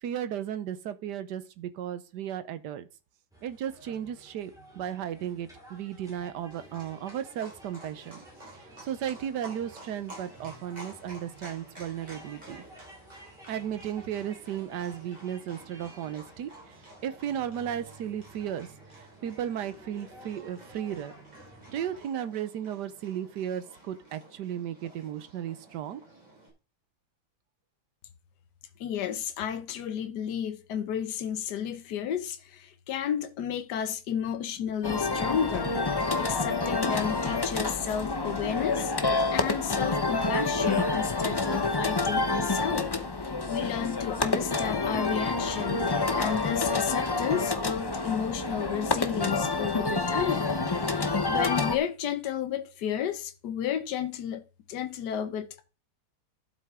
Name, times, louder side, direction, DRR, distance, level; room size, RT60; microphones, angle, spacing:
voice 1, 0.0-2.9 3.4-8.2 8.8-12.6 13.5-18.7 18.9-21.1 21.7-26.0, right 10 dB, 85° right, 1.4 m, -35 dB
sound 1, 3.3-22.1, right 1 dB, ahead, 4.6 m, -53 dB
Livestock farm animals working animals, 6.5-26.5, right 1 dB, 25° right, 4.4 m, -51 dB
voice 2, 28.8-35.8 36.2-38.9 39.3-42.9 43.5-45.9 46.2-50.5 50.8-55.6, left 9 dB, 80° left, 1.5 m, -32 dB
sound 2, 34.8-51.8, left 3 dB, 30° left, 0.4 m, -28 dB
12.0 x 7.7 x 3.7 m
omnidirectional pair, 1.8 m